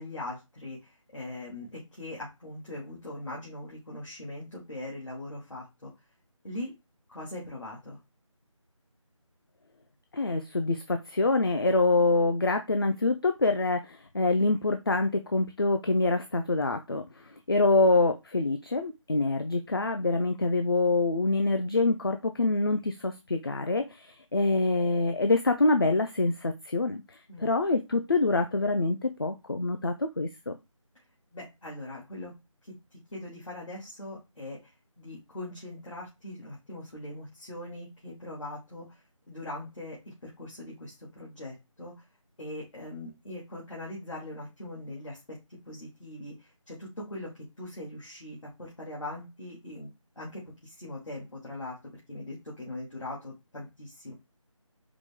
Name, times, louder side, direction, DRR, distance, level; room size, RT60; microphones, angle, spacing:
voice 1, 0.0-5.9 6.4-6.7 7.1-8.0 27.3-27.5 31.3-32.3 32.6-41.9 42.4-45.4 45.7-47.3 47.6-49.9 50.2-51.8 52.1-54.1, left 1 dB, 70° left, -5 dB, 2.0 m, -41 dB
voice 2, 10.1-17.0 17.5-27.0 27.4-30.6, left 3 dB, 45° left, 6 dB, 0.4 m, -25 dB
4.9 x 2.2 x 3.4 m, 0.23 s
figure-of-eight pair, 170°, 17 cm